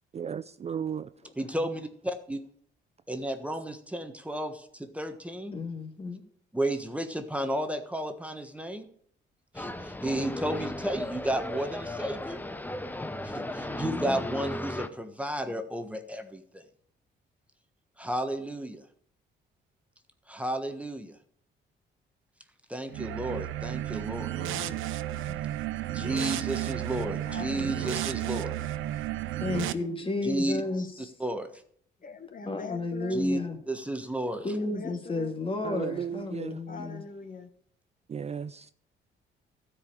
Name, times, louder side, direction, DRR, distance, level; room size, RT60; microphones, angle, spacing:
voice 1, 0.1-1.1 35.6-36.6 38.1-38.7, right 7 dB, 35° right, 0.4 m, -35 dB
voice 2, 1.4-2.4 3.1-5.5 6.5-8.9 9.5-12.4 13.2-16.6 18.0-18.8 20.3-21.2 22.7-24.3 25.9-28.5 30.2-30.6 31.2-31.5 33.1-33.4 33.7-34.5, right 1 dB, 5° right, 1.3 m, -32 dB
voice 3, 5.5-6.2 13.6-14.2 25.3-25.5 26.0-26.1 29.4-31.1 32.5-33.6 34.4-37.0, left 2 dB, 25° left, 2.0 m, -33 dB
sound 1, 9.5-14.9, left 1 dB, 10° left, 0.8 m, -36 dB
sound 2, 22.9-29.7, right 14 dB, 90° right, 0.6 m, -32 dB
voice 4, 24.4-24.9 27.3-27.9 29.6-29.9 30.8-30.9 32.0-33.2 34.7-35.3 36.7-37.5, left 5 dB, 45° left, 1.2 m, -42 dB
13.0 x 5.0 x 8.7 m
cardioid pair, 90°, 20 cm